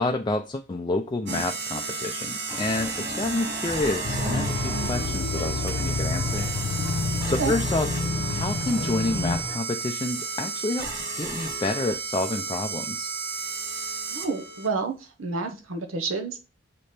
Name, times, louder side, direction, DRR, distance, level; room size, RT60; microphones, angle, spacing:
voice 1, 0.0-6.5 7.2-7.9 8.3-10.9 11.2-13.1, left 2 dB, 20° left, 5 dB, 0.4 m, -29 dB
sound 1, 1.3-14.7, right 3 dB, 55° right, 1.1 m, -32 dB
sound 2, 2.5-9.6, equal, 15° right, 0.8 m, -40 dB
sound 3, 4.0-9.4, left 3 dB, 85° left, 0.7 m, -29 dB
voice 2, 14.1-16.4, right 4 dB, 85° right, 4 dB, 0.9 m, -29 dB
7.5 x 3.3 x 4.3 m, 0.30 s
head